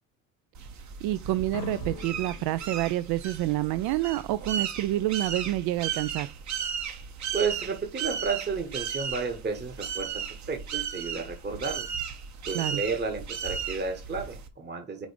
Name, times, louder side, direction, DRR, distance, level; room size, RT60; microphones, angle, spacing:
sound 1, 0.5-14.5, right 7 dB, 45° right, 1.0 m, -35 dB
voice 1, 1.0-6.3 12.5-12.8, right 15 dB, 65° right, 0.5 m, -28 dB
sound 2, 1.5-4.4, left 5 dB, 55° left, 1.0 m, -44 dB
voice 2, 7.3-11.9 12.5-15.1, right 4 dB, 25° right, 1.1 m, -32 dB
5.1 x 3.9 x 4.9 m
supercardioid pair, 90°, 42 cm